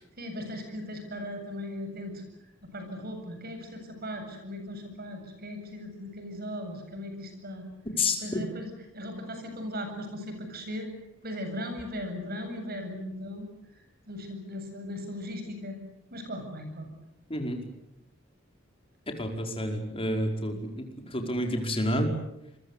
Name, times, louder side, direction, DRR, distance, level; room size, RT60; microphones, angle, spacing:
voice 1, 0.2-2.2 2.7-7.7 8.2-8.7 8.9-10.9 11.2-13.5 13.7-15.8 16.1-16.9, left 1 dB, 50° right, 6 dB, 7.9 m, -38 dB
voice 2, 8.0-8.4 17.3-17.6 19.1-22.1, left 1 dB, 25° left, 3 dB, 5.0 m, -29 dB
28.0 x 23.0 x 8.3 m, 0.82 s
head